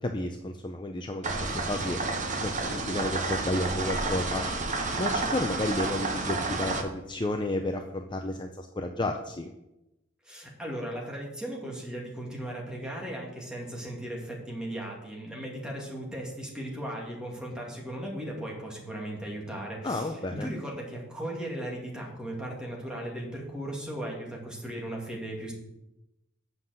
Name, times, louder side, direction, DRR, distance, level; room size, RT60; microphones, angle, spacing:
voice 1, 0.0-2.0 2.4-4.4 5.0-9.5 19.8-20.5, left 1 dB, 20° left, 4 dB, 0.6 m, -32 dB
sound 1, 1.2-6.8, right 3 dB, 35° right, 1.2 m, -30 dB
voice 2, 10.2-25.5, right 1 dB, 5° right, -2 dB, 2.2 m, -37 dB
7.9 x 5.7 x 7.6 m, 0.90 s
head